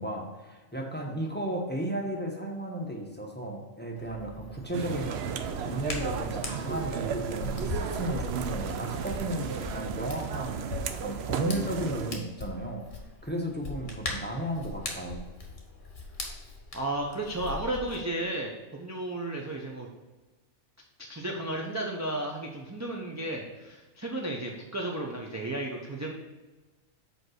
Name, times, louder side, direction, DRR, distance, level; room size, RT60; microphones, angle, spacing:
voice 1, 0.0-10.6 10.9-12.9 13.2-15.2, right 1 dB, 10° left, 1 dB, 0.8 m, -34 dB
Hands, 4.0-18.0, left 3 dB, 40° left, 1.2 m, -41 dB
sound 1, 4.7-12.2, right 7 dB, 65° right, 0.7 m, -34 dB
voice 2, 16.7-19.9 21.1-26.1, right 1 dB, 20° right, -1 dB, 0.5 m, -33 dB
5.1 x 4.7 x 6.3 m, 1.2 s
omnidirectional pair, 1.4 m